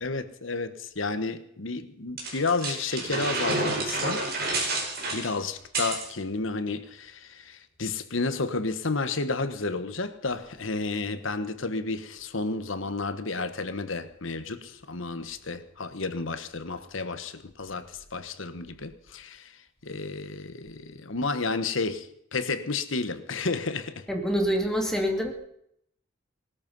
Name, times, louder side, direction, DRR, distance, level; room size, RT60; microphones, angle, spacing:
voice 1, 0.0-4.2 5.1-24.1, left 3 dB, 75° left, 1.3 m, -31 dB
sound 1, 2.2-6.1, right 2 dB, 50° right, 5.0 m, -29 dB
voice 2, 24.1-25.3, equal, 5° left, 2.2 m, -26 dB
20.0 x 13.5 x 5.4 m
head